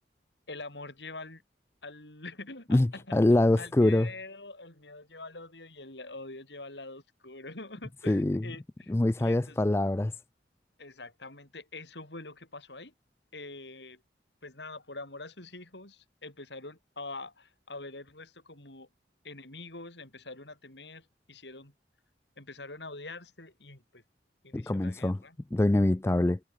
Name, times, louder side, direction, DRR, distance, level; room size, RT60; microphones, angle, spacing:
voice 1, 0.5-1.4 1.8-8.9 9.2-9.6 10.8-12.9 13.3-14.0 14.4-18.9 19.2-21.7 22.4-24.0 24.4-25.4, left 2 dB, 80° left, 6.5 m, -45 dB
voice 2, 2.7-4.1 8.1-8.4 8.9-10.1 24.5-25.2 25.5-26.4, left 1 dB, 15° left, 0.3 m, -24 dB
head